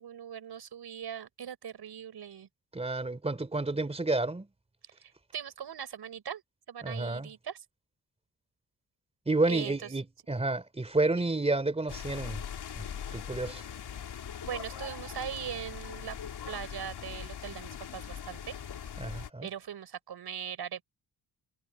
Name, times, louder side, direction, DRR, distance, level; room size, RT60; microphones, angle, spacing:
voice 1, 0.0-2.5 5.0-6.4 6.7-7.6 9.5-9.9 11.2-11.3 14.4-16.2 16.5-18.6 19.4-20.8, right 8 dB, 80° right, 6.3 m, -40 dB
voice 2, 2.7-4.5 6.8-7.3 9.3-12.4 12.8-12.9 13.1-13.6 19.0-19.5, right 2 dB, 15° right, 3.5 m, -30 dB
sound 1, 11.9-19.3, left 8 dB, 90° left, 3.4 m, -41 dB
wide cardioid pair, 175°, 39 cm